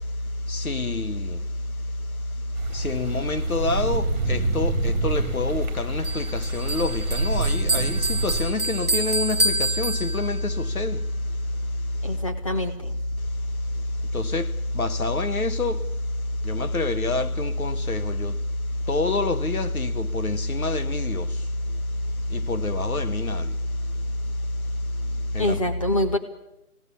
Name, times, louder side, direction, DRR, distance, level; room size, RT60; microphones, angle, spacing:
voice 1, 0.5-1.4 2.7-11.0 14.1-14.5 14.7-15.8 16.4-18.3 18.9-21.3 22.3-23.5 25.3-25.6, left 2 dB, 70° left, 1.6 m, -26 dB
sound 1, 2.5-8.4, right 3 dB, 10° right, 4.6 m, -28 dB
Bell, 6.0-10.6, right 2 dB, 30° right, 1.1 m, -27 dB
voice 2, 12.0-12.9 25.4-26.2, left 1 dB, 20° left, 1.6 m, -25 dB
25.5 x 18.0 x 8.5 m
hypercardioid pair, 180°, 44 cm